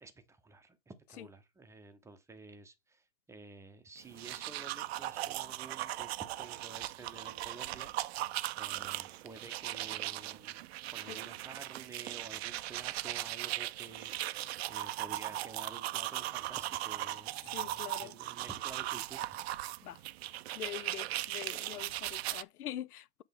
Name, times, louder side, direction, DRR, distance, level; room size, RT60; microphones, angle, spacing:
voice 1, 0.0-6.1 6.4-7.9 8.5-10.6 10.9-14.4 14.7-17.7 18.0-19.4, right 4 dB, 5° right, 0.6 m, -51 dB
sound 1, 4.0-22.4, right 15 dB, 45° right, 0.5 m, -38 dB
voice 2, 17.5-18.1 19.8-20.0 20.5-23.2, left 12 dB, 80° left, 0.6 m, -44 dB
7.9 x 3.5 x 3.5 m
hypercardioid pair, 115°, 44 cm